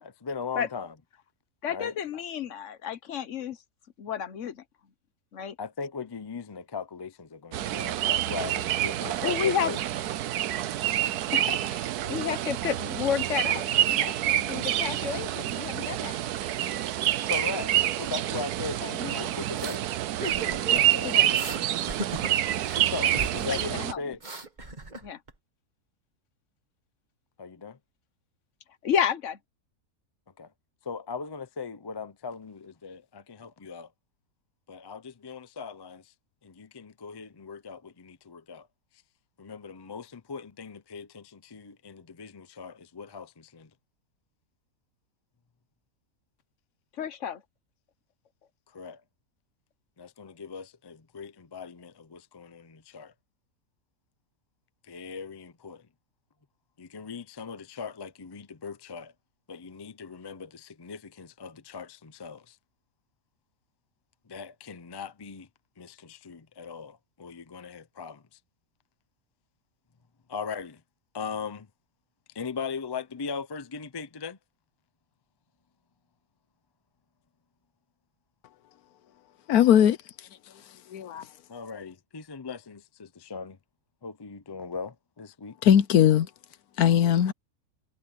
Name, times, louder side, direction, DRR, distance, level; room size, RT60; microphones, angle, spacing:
voice 1, 0.0-0.9 1.7-1.9 5.6-9.8 12.0-12.3 17.2-19.9 20.3-20.7 20.9-21.4 22.8-24.2 27.4-27.8 30.4-30.5 30.8-33.9 34.7-36.1 36.4-38.7 39.4-43.7 48.7-49.0 50.0-53.1 54.9-55.8 56.8-59.1 59.5-62.6 64.3-65.5 65.8-68.2 70.3-70.8 71.1-71.7 72.3-74.4 81.5-83.6 84.0-85.6, left 5 dB, 30° left, 0.5 m, -39 dB
voice 2, 1.6-3.6 4.0-4.6 5.3-5.6 9.2-9.7 11.3-16.2 18.8-19.3 20.7-21.3 23.4-24.2 25.0-25.2 28.8-29.4 47.0-47.4, left 8 dB, 55° left, 1.2 m, -31 dB
sound 1, 7.5-23.9, right 12 dB, 75° right, 1.2 m, -27 dB
sound 2, 19.6-19.8 20.2-20.9 21.3-21.6 21.9-22.8 23.1-23.6 23.9-25.3, right 2 dB, 30° right, 2.0 m, -36 dB
voice 3, 79.5-80.0 80.9-81.2 85.6-86.3 86.8-87.3, left 10 dB, 75° left, 1.2 m, -19 dB
omnidirectional pair, 1.7 m